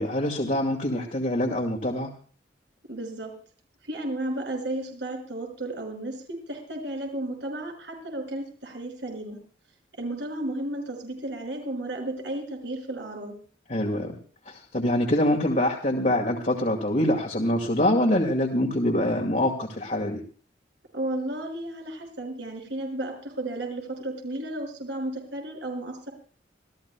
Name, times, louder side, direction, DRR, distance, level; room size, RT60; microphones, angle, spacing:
voice 1, 0.0-2.1 13.7-14.2 14.5-20.2, left 1 dB, 45° left, 0 dB, 2.2 m, -25 dB
voice 2, 2.9-3.3 3.8-9.4 10.0-13.3 20.9-26.1, right 1 dB, 80° right, 1 dB, 6.0 m, -33 dB
27.0 x 15.5 x 2.3 m, 0.42 s
head